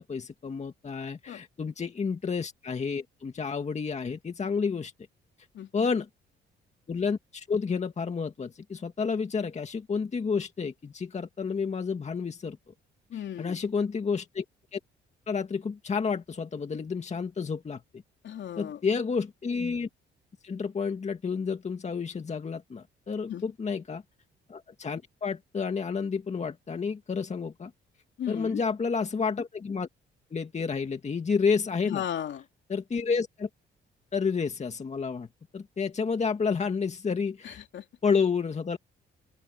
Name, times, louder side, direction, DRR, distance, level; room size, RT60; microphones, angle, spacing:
voice 1, 0.0-4.9 5.7-6.1 6.9-12.6 13.4-14.4 14.7-14.8 15.3-18.0 18.6-19.9 20.4-24.0 24.5-27.7 28.3-29.9 30.3-32.0 32.7-33.5 34.1-35.3 35.5-37.6 38.0-38.8, left 5 dB, 35° left, 2.1 m, -30 dB
voice 2, 13.1-13.6 18.2-18.8 23.3-23.5 28.2-28.6 31.8-32.4 37.4-37.8, left 10 dB, 65° left, 3.3 m, -35 dB
open air
cardioid pair, 90°, 20 cm